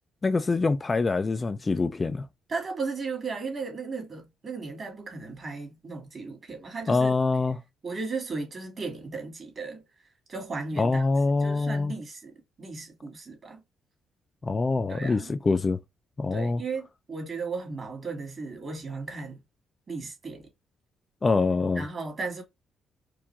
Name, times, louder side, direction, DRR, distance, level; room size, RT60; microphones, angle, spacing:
voice 1, 0.2-2.3 6.9-7.6 10.8-11.9 14.4-15.8 16.2-16.6 21.2-21.8, left 3 dB, 30° left, 0.4 m, -25 dB
voice 2, 2.5-7.1 7.8-9.8 10.3-11.0 11.4-13.6 14.9-15.3 16.3-19.4 19.9-20.5 21.8-22.4, right 4 dB, 40° right, 2.5 m, -35 dB
4.6 x 2.5 x 3.5 m
cardioid pair, 90°, 0 cm